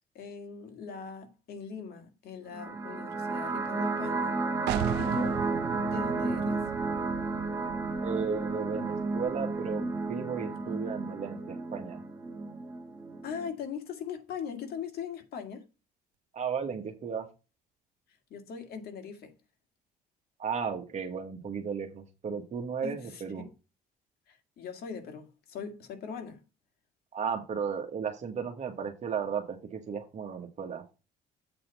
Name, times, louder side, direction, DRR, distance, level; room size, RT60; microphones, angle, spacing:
voice 1, 0.1-4.3 5.0-5.5 5.8-6.7 13.2-15.6 18.3-19.4 22.8-23.5 24.3-26.4, left 6 dB, 65° left, 2.0 m, -40 dB
sound 1, 2.5-13.5, right 3 dB, 20° right, 1.7 m, -32 dB
sound 2, 4.7-10.2, right 14 dB, 85° right, 0.4 m, -38 dB
voice 2, 8.0-12.0 16.3-17.3 20.4-23.5 27.1-30.8, right 6 dB, 45° right, 1.6 m, -34 dB
8.0 x 4.1 x 5.4 m
cardioid pair, 110°, 17 cm